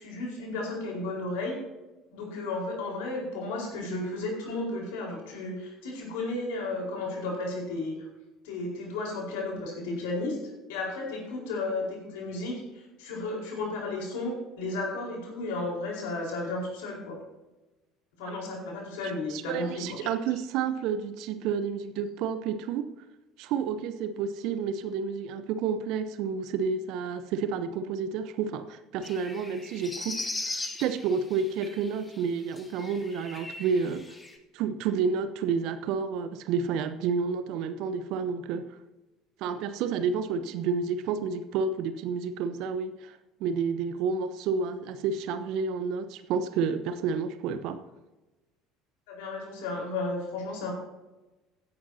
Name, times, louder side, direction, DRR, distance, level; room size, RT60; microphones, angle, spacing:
voice 1, 0.0-1.6 2.1-7.9 8.4-10.4 10.7-17.2 18.2-20.1 40.3-40.4 49.1-50.7, left 2 dB, 70° left, -1 dB, 4.5 m, -33 dB
voice 2, 19.3-22.9 23.4-34.1 34.5-38.7 39.4-47.8, right 6 dB, 60° right, 11 dB, 0.9 m, -30 dB
sound 1, 29.0-32.2 32.6-34.4, left 2 dB, 20° left, 2.0 m, -39 dB
16.0 x 11.0 x 2.8 m, 1.1 s
figure-of-eight pair, 60°, 0 cm